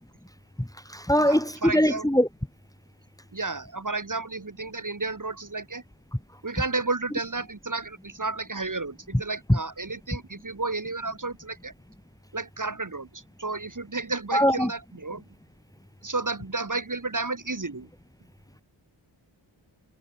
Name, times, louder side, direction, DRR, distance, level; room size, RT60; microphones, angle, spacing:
voice 1, 0.6-2.3 9.5-9.6 14.3-14.7, equal, 5° left, 2.6 m, -22 dB
voice 2, 1.2-2.1 3.3-5.8 6.4-11.7 12.3-15.2 16.0-17.9, right 3 dB, 40° right, 3.2 m, -32 dB
wide cardioid pair, 75°, 48 cm